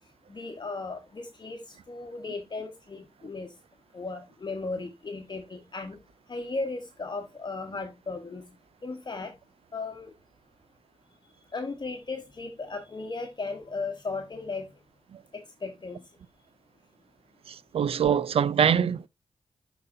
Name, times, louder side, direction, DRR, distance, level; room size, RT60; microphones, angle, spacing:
voice 1, 0.3-1.6 1.9-3.5 3.9-6.0 6.3-8.4 8.8-9.3 9.7-10.1 11.5-14.7 15.3-16.0, left 3 dB, 45° left, 1.1 m, -36 dB
voice 2, 17.5-19.1, right 8 dB, 70° right, 0.4 m, -24 dB
12.0 x 4.1 x 2.6 m
cardioid pair, 60°, 10 cm